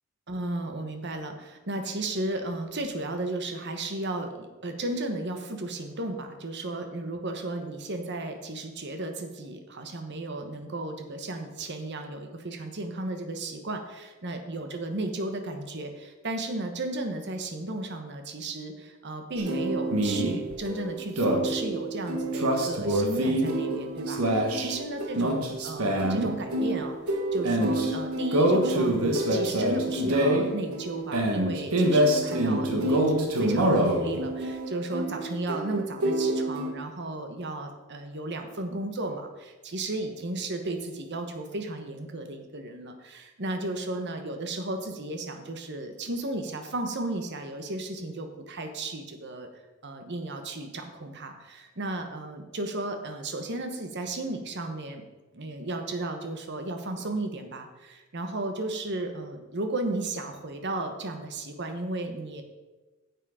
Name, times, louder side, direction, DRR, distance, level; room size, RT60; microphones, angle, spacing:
voice 1, 0.3-27.0 27.3-49.5 49.8-55.0 55.3-62.4, right 2 dB, 50° right, 6 dB, 1.2 m, -34 dB
sound 1, 19.4-36.7, right 1 dB, 80° right, 1.4 m, -26 dB
9.1 x 7.5 x 4.9 m, 1.2 s
head